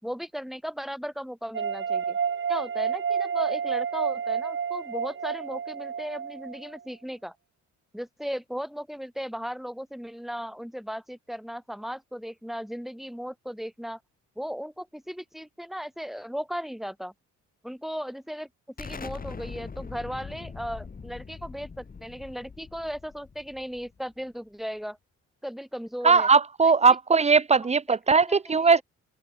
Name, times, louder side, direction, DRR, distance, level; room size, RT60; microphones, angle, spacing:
voice 1, 0.0-2.2 2.5-7.4 7.9-14.0 14.4-17.1 17.6-18.5 18.8-25.0 25.4-26.3 26.6-26.7 28.3-28.8, equal, ahead, 3.6 m, -36 dB
sound 1, 1.5-6.8, right 7 dB, 40° right, 2.2 m, -29 dB
Explosion, 18.8-24.2, left 5 dB, 30° left, 1.9 m, -42 dB
voice 2, 26.0-28.8, right 5 dB, 20° right, 0.9 m, -19 dB
cardioid pair, 90°, 30 cm